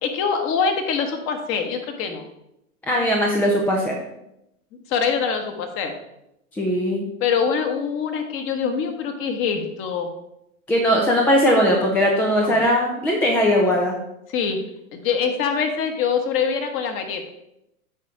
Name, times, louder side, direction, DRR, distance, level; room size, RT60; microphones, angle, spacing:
voice 1, 0.0-2.2 4.9-6.0 7.2-10.1 12.4-12.6 14.3-14.6 14.9-17.3, left 6 dB, 30° left, 7 dB, 1.3 m, -24 dB
voice 2, 2.9-4.0 6.5-7.0 10.7-14.0, equal, 5° left, -1 dB, 0.4 m, -19 dB
9.1 x 4.3 x 5.0 m, 0.84 s
figure-of-eight pair, 105°, 44 cm